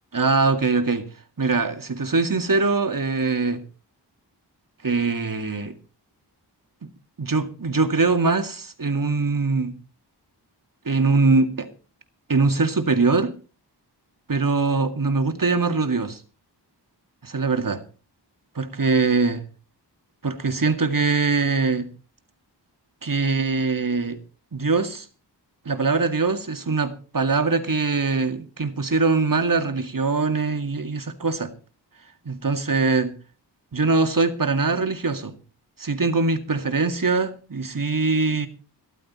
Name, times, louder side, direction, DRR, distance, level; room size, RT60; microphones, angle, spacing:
voice 1, 0.1-1.0 1.4-3.6 4.8-5.8 7.2-9.7 10.9-11.7 12.3-13.3 14.3-16.2 17.2-17.8 18.6-19.4 20.2-21.9 23.0-24.2 24.5-25.1 25.7-31.5 32.3-33.1 33.7-35.4 35.8-38.5, right 4 dB, 50° right, 2.1 m, -22 dB
15.0 x 13.5 x 4.3 m
wide cardioid pair, 95°, 42 cm